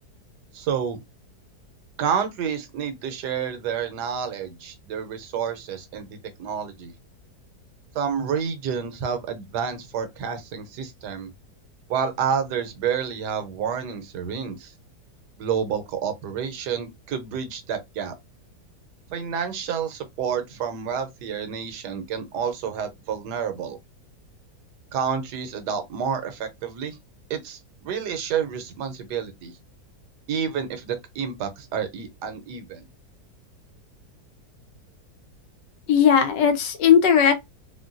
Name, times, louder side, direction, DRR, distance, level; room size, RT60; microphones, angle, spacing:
voice 1, 0.5-1.0 2.0-6.9 7.9-11.3 11.9-14.7 15.4-18.1 19.1-23.8 24.9-27.0 27.3-29.6 30.3-32.9, right 7 dB, 75° right, 1.2 m, -29 dB
voice 2, 35.9-37.3, left 8 dB, 85° left, 1.4 m, -17 dB
3.7 x 2.2 x 2.5 m
omnidirectional pair, 1.8 m